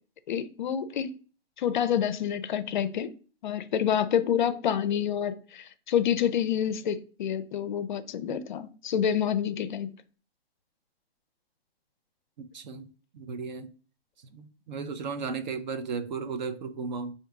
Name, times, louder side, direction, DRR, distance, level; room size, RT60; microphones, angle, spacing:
voice 1, 0.3-1.1 1.6-3.1 3.4-9.9, left 9 dB, 50° left, 0.4 m, -28 dB
voice 2, 12.5-12.9 13.1-13.7 14.2-17.1, right 5 dB, 45° right, 0.5 m, -35 dB
3.6 x 2.7 x 3.4 m
hypercardioid pair, 130°, 32 cm